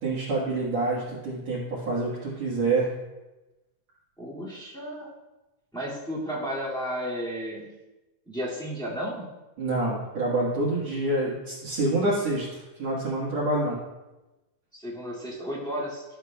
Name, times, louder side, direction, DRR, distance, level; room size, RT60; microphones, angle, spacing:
voice 1, 0.0-2.9 9.6-13.8, right 2 dB, 55° right, -7 dB, 2.4 m, -27 dB
voice 2, 4.2-5.1 5.7-7.7 8.2-9.2 14.7-16.0, equal, ahead, -8 dB, 0.9 m, -33 dB
12.5 x 7.1 x 2.2 m, 1.1 s
omnidirectional pair, 4.0 m